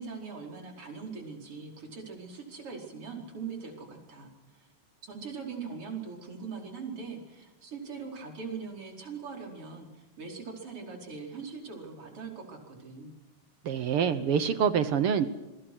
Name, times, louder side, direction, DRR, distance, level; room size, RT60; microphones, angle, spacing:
voice 1, 0.0-4.7 5.0-13.1, right 5 dB, 45° right, 1 dB, 5.5 m, -41 dB
voice 2, 13.6-15.3, right 7 dB, 60° right, 12 dB, 1.6 m, -26 dB
27.0 x 23.5 x 6.3 m, 1.1 s
omnidirectional pair, 3.6 m